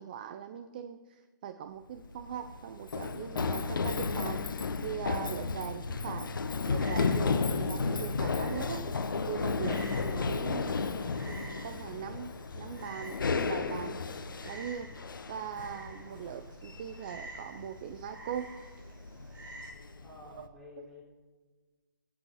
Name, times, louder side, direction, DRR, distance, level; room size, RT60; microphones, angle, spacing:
voice 1, 0.0-6.3 6.7-10.7 11.2-14.0 14.4-14.9 15.3-18.5 20.3-20.5, right 9 dB, 25° right, 9 dB, 0.4 m, -41 dB
Run, 1.9-20.5, left 4 dB, 80° left, 1.1 m, -34 dB
Frog, 6.8-19.7, right 2 dB, 80° right, 4.2 m, -51 dB
voice 2, 20.0-21.0, left 3 dB, ahead, -8 dB, 3.9 m, -50 dB
22.5 x 8.4 x 5.6 m, 1.4 s
hypercardioid pair, 165°, 11 cm